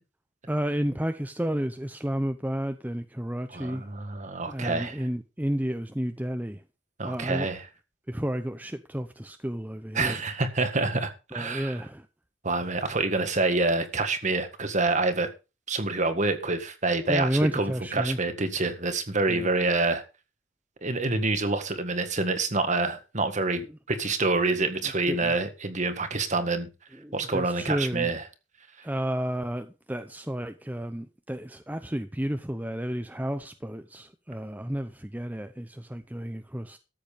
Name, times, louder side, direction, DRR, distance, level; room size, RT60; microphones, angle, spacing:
voice 1, 0.5-3.8 4.5-6.6 7.0-7.5 8.1-10.2 11.3-12.1 17.1-18.2 19.3-19.5 25.1-25.4 26.9-28.1 28.8-36.8, equal, 10° right, 0.7 m, -31 dB
voice 2, 3.5-5.1 7.0-7.7 9.9-11.7 12.4-15.3 15.7-20.0 20.8-26.7 27.1-28.2, right 3 dB, 40° right, 1.8 m, -27 dB
13.5 x 8.0 x 5.1 m
head